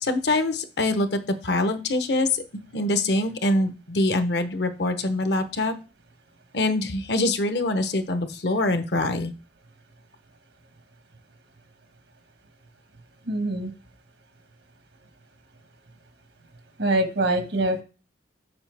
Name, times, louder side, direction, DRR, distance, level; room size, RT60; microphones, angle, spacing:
voice 1, 0.0-5.8 6.5-9.3, left 2 dB, 65° left, 9 dB, 0.8 m, -24 dB
voice 2, 13.3-13.7 16.8-17.8, right 1 dB, 85° right, 6 dB, 1.4 m, -24 dB
7.0 x 6.2 x 3.4 m, 0.34 s
head